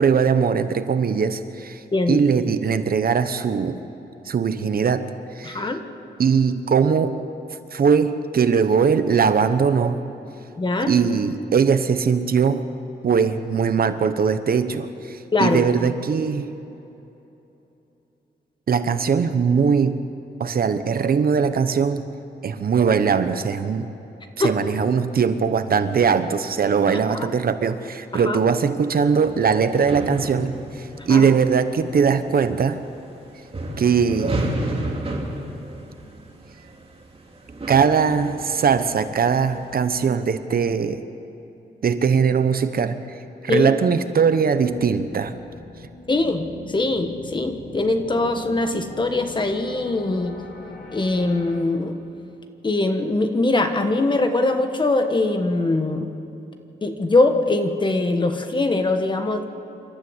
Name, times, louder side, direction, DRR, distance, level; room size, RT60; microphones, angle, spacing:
voice 1, 0.0-1.8 2.1-3.8 4.3-5.1 5.4-5.6 6.2-7.2 7.7-10.0 10.8-12.6 13.0-16.5 18.7-20.0 20.4-22.0 22.4-23.9 24.4-32.8 33.8-34.6 37.7-41.0 41.8-43.0 43.4-45.3, right 6 dB, 55° right, 10 dB, 0.9 m, -20 dB
voice 2, 5.4-5.8 10.6-10.9 15.3-15.7 24.4-24.5 27.1-27.3 28.1-28.4 31.1-31.3 43.5-43.7 46.1-50.3 50.9-52.0 52.6-56.1 56.8-59.4, left 2 dB, 25° left, 6 dB, 1.3 m, -22 dB
sound 1, 28.9-40.1, right 1 dB, 35° right, 2.6 m, -33 dB
sound 2, 44.7-51.6, left 3 dB, 75° left, 2.7 m, -40 dB
27.5 x 13.0 x 8.0 m, 2.9 s
wide cardioid pair, 175°, 18 cm